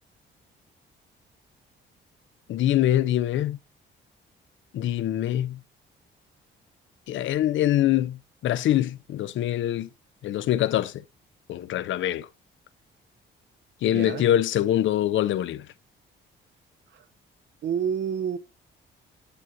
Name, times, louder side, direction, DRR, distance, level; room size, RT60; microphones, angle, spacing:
voice 1, 2.5-3.6 4.7-5.6 7.1-9.9 10.2-11.0 11.5-12.3 13.8-15.7, left 12 dB, 75° left, 0.7 m, -24 dB
voice 2, 13.9-14.3 16.9-17.0 17.6-18.4, right 8 dB, 65° right, 1.0 m, -28 dB
9.9 x 6.4 x 2.7 m
cardioid pair, 90°, 20 cm